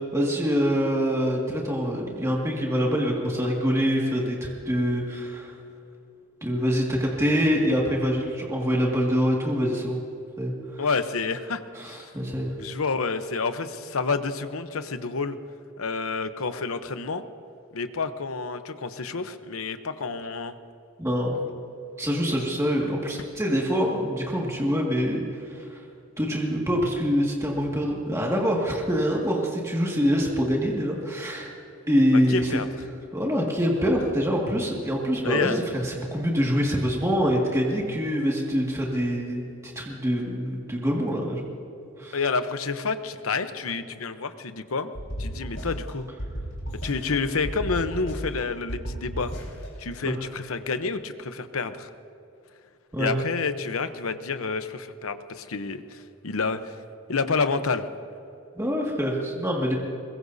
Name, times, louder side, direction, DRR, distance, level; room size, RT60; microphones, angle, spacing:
voice 1, 0.1-5.5 6.4-10.0 10.4-10.8 11.7-12.5 21.0-21.4 22.0-25.8 26.2-31.5 31.9-32.6 33.1-41.5 42.0-42.2 50.0-50.1 52.9-53.1 58.6-59.7, equal, 15° right, -2 dB, 2.0 m, -25 dB
voice 2, 10.8-12.1 12.6-15.4 15.8-17.2 17.7-20.6 32.1-32.7 35.2-35.6 42.1-44.9 45.2-46.1 46.8-49.3 49.8-51.9 53.0-56.7 57.1-57.9, left 4 dB, 80° left, 10 dB, 0.9 m, -29 dB
sound 1, 44.9-45.9 46.2-47.2 47.4-48.4 48.7-49.7, equal, 65° left, 4.4 m, -34 dB
22.5 x 21.0 x 2.7 m, 2.8 s
head